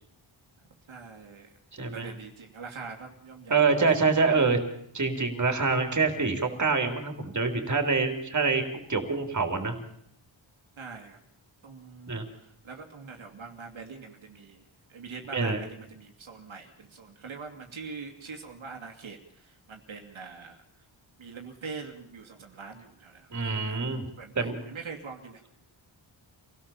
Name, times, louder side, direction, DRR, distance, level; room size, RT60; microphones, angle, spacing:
voice 1, 0.9-1.5 1.9-4.4 10.8-11.2 11.6-14.6 14.9-20.6 21.2-23.9 24.2-25.4, right 5 dB, 75° right, 2 dB, 2.7 m, -43 dB
voice 2, 1.7-2.1 3.5-4.6 4.9-9.8 12.1-12.2 15.3-15.6 23.3-24.1 24.4-24.6, right 4 dB, 35° right, 6 dB, 3.5 m, -26 dB
26.5 x 17.0 x 7.2 m, 0.69 s
wide cardioid pair, 140°, 48 cm